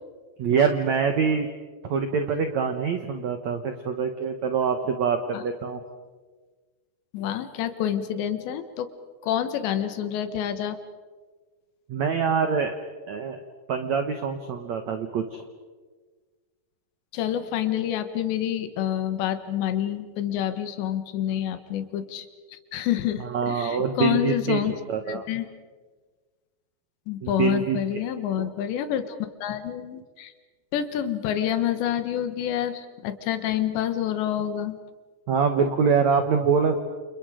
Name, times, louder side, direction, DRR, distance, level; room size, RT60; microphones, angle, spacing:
voice 1, 0.4-1.5 1.8-5.8 11.9-12.7 13.1-13.4 13.7-15.4 23.3-24.6 24.9-25.2 27.2-27.8 28.4-28.5 35.3-36.8, right 6 dB, 75° right, 7 dB, 1.6 m, -24 dB
voice 2, 7.1-8.9 9.2-10.8 17.1-24.8 25.1-25.5 27.1-30.3 30.7-34.8, left 10 dB, 80° left, 10 dB, 3.6 m, -28 dB
29.5 x 29.0 x 5.1 m, 1.4 s
omnidirectional pair, 5.1 m